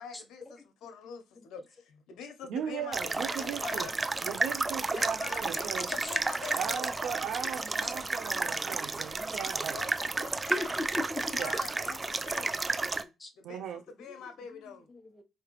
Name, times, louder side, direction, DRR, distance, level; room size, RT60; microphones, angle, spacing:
voice 1, 0.0-3.9 4.9-6.9 9.7-10.7 11.2-12.6 13.4-14.9, left 6 dB, 80° left, 1.0 m, -45 dB
voice 2, 2.5-3.9 4.2-5.9 6.5-9.8 11.4-11.6 13.4-13.8, right 8 dB, 80° right, 0.5 m, -37 dB
sound 1, 2.9-13.0, right 3 dB, 25° right, 0.4 m, -32 dB
voice 3, 10.5-11.2 11.9-12.1 12.3-12.5 13.0-13.3 14.0-14.1 14.5-15.2, left 2 dB, 15° left, 1.0 m, -39 dB
4.6 x 3.2 x 3.1 m
cardioid pair, 90°, 0 cm